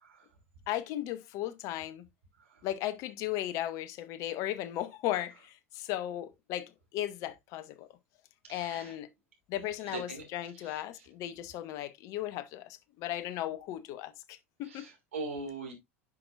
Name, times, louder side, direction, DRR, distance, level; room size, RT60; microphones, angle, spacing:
voice 1, 0.7-2.1 2.6-7.9 8.5-9.1 9.5-14.8, left 13 dB, 50° left, 0.8 m, -36 dB
voice 2, 8.5-9.0 9.9-10.2 10.5-11.0 14.7-15.7, right 3 dB, 75° right, 2.7 m, -41 dB
9.8 x 6.1 x 2.5 m
figure-of-eight pair, 75°, 7 cm